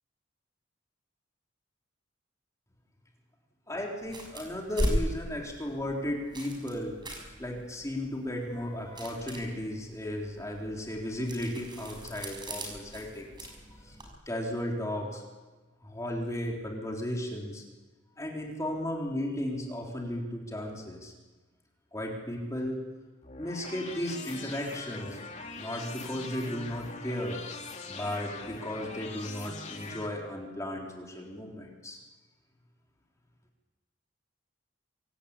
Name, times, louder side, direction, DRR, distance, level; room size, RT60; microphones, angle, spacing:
voice 1, 3.7-7.0 7.4-14.0 14.3-15.2 15.8-17.6 18.2-21.1 21.9-22.9 23.4-25.2 25.6-27.4 27.9-32.0, left 1 dB, 15° left, -1 dB, 3.9 m, -35 dB
sound 1, 4.0-14.1, equal, 25° right, 5.8 m, -38 dB
sound 2, 23.2-30.1, left 3 dB, 40° left, 2.6 m, -42 dB
25.5 x 17.0 x 8.5 m, 1.2 s
head